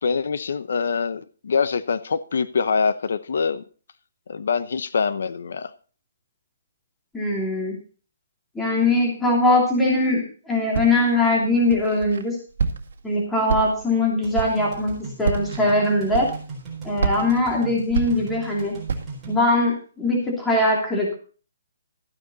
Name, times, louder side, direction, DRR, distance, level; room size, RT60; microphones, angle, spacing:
voice 1, 0.0-3.6 4.3-5.7, left 5 dB, 65° left, 0.8 m, -24 dB
voice 2, 7.1-7.8 8.5-12.4 13.0-16.3 16.8-18.7 19.3-21.2, left 2 dB, 5° left, 2.6 m, -21 dB
Walk footsteps, 10.7-11.2 11.7-12.2 12.6-13.1 13.5-14.0 14.3-14.7 15.2-15.6 16.1-16.6 17.0-18.5 18.9-19.3, right 5 dB, 60° right, 1.9 m, -27 dB
sound 1, 14.2-19.4, right 4 dB, 10° right, 3.9 m, -37 dB
13.5 x 9.6 x 4.1 m
hypercardioid pair, 170°, 0 cm